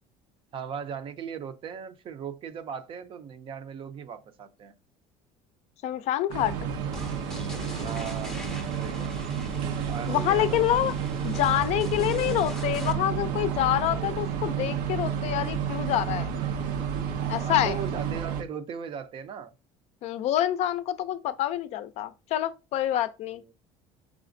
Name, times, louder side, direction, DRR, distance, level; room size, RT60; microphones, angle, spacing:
voice 1, 0.5-4.7 6.7-6.9 7.8-8.5 8.8-9.1 9.9-10.6 17.4-19.5 23.3-23.5, right 7 dB, 40° right, 0.6 m, -38 dB
voice 2, 5.8-6.6 10.1-10.9 11.2-16.3 17.3-17.8 20.0-23.4, left 13 dB, 55° left, 0.4 m, -27 dB
sound 1, 6.3-18.4, right 7 dB, 85° right, 0.7 m, -31 dB
sound 2, 6.9-12.9, left 1 dB, 5° left, 0.6 m, -42 dB
4.9 x 4.1 x 2.6 m
cardioid pair, 140°, 14 cm